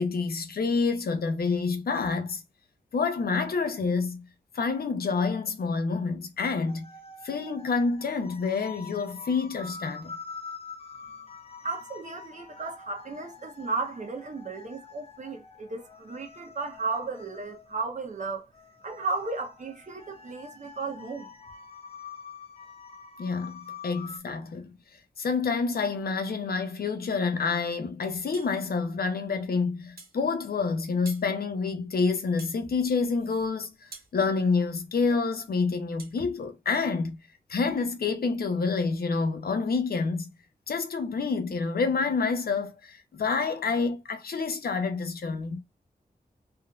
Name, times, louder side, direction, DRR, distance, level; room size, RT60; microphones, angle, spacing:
voice 1, 0.0-2.4 2.9-4.2 4.5-6.9 7.2-10.1 23.2-24.8 25.2-37.2 37.5-40.3 40.7-45.6, left 4 dB, 75° left, 0.7 m, -28 dB
sound 1, 6.7-24.2, left 5 dB, 40° left, 0.6 m, -46 dB
voice 2, 11.6-18.4 18.8-21.3, right 4 dB, 50° right, 1.0 m, -34 dB
sound 2, 28.3-28.6 30.0-30.2 31.0-31.3 32.4-32.6 33.9-34.1 36.0-36.2, right 4 dB, 75° right, 1.1 m, -46 dB
3.4 x 2.7 x 2.3 m
wide cardioid pair, 75°, 16 cm